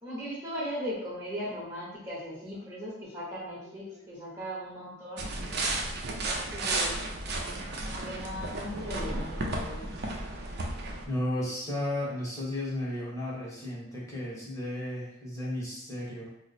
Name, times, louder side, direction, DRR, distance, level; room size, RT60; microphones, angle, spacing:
voice 1, 0.0-5.3 6.0-6.9 7.8-9.9, equal, 20° right, -9 dB, 0.9 m, -38 dB
voice 2, 3.6-4.1 11.1-16.3, left 1 dB, 15° left, -6 dB, 1.0 m, -34 dB
sound 1, 5.2-11.0, right 2 dB, 55° right, 0.5 m, -33 dB
2.9 x 2.0 x 4.1 m, 0.81 s
head